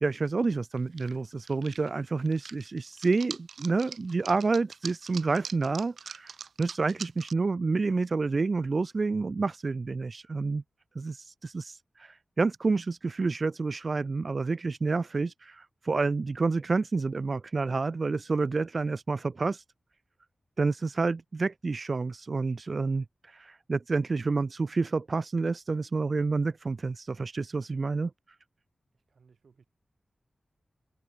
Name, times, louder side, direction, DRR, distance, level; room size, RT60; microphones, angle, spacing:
voice 1, 0.0-10.6 10.9-19.6 20.6-28.1, right 3 dB, 45° right, 0.8 m, -29 dB
sound 1, 0.8-1.2 1.5-7.3, right 6 dB, 90° right, 2.8 m, -43 dB
voice 2, 29.1-29.7, right 5 dB, 70° right, 7.1 m, -61 dB
wide cardioid pair, 130°, 0 cm